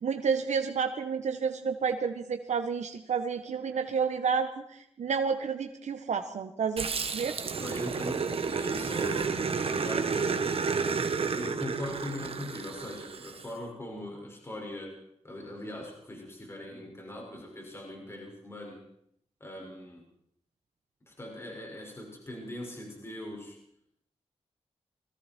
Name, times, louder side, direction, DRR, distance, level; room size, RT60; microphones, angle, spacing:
voice 1, 0.0-4.6 5.0-7.4 9.9-10.0 10.3-10.4, right 6 dB, 85° right, 6 dB, 1.5 m, -30 dB
Growling, 6.8-13.5, right 5 dB, 55° right, 1.7 m, -31 dB
voice 2, 7.6-10.5 11.3-18.8 19.4-20.0 21.1-23.6, left 1 dB, 20° left, -1 dB, 6.1 m, -41 dB
29.0 x 21.5 x 4.6 m, 0.73 s
wide cardioid pair, 145°, 12 cm